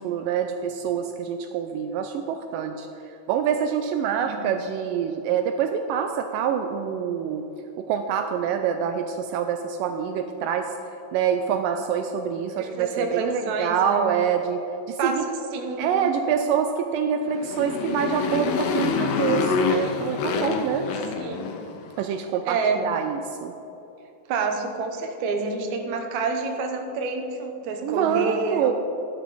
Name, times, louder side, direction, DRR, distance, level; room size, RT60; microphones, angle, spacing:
voice 1, 0.0-7.4 7.8-10.7 11.1-15.3 15.8-20.9 22.0-23.6 27.8-28.7, right 8 dB, 80° right, 6 dB, 2.2 m, -26 dB
voice 2, 12.6-14.1 15.0-16.1 21.2-21.5 22.5-22.8 24.3-28.7, right 4 dB, 65° right, 4 dB, 2.1 m, -28 dB
Motorcycle, 17.3-21.9, left 5 dB, 75° left, 1.5 m, -26 dB
13.5 x 11.0 x 4.2 m, 2.8 s
omnidirectional pair, 4.0 m